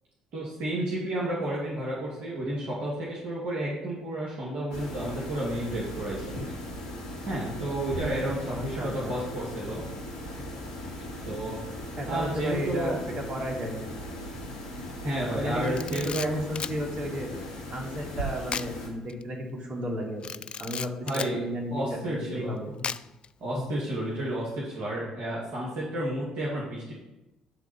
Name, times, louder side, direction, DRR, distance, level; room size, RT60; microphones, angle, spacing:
voice 1, 0.3-6.6 7.3-9.8 11.2-11.6 12.1-13.0 15.0-16.4 21.0-22.6 23.4-26.9, right 1 dB, 60° right, -6 dB, 2.4 m, -31 dB
sound 1, 4.7-18.9, equal, 85° left, 1.8 m, -38 dB
voice 2, 8.4-9.1 12.0-13.8 15.3-17.3 17.7-20.2 20.6-22.7 23.5-23.6, equal, 40° right, -1 dB, 3.0 m, -33 dB
Camera, 15.6-16.8 18.5-18.7 19.1-19.2 20.2-21.3 22.8-23.3, left 6 dB, 40° left, 0.3 m, -35 dB
11.5 x 4.0 x 5.9 m, 0.96 s
hypercardioid pair, 55°, 3 cm